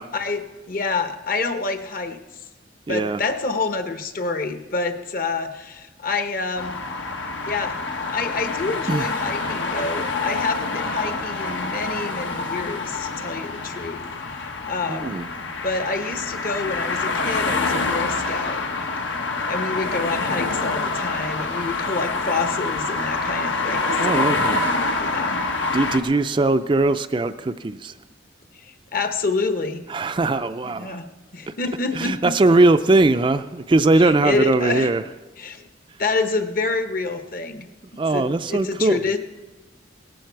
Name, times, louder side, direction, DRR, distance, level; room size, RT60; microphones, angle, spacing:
voice 1, 0.1-2.2 2.9-6.7 7.4-7.8 8.1-14.0 14.3-15.2 15.6-18.6 19.5-24.7 24.9-25.4 28.6-29.8 30.6-32.3 34.0-34.9 35.4-35.6 36.0-37.7 38.1-39.2, left 3 dB, 50° left, 8 dB, 1.0 m, -27 dB
voice 2, 2.9-3.2 8.9-9.1 14.9-15.3 24.0-24.6 25.7-27.9 29.9-31.0 31.9-35.0 38.0-39.0, right 2 dB, 25° right, 10 dB, 0.4 m, -20 dB
sound 1, 6.6-26.0, left 3 dB, 90° left, 1.4 m, -26 dB
17.5 x 14.0 x 4.6 m, 1.3 s
head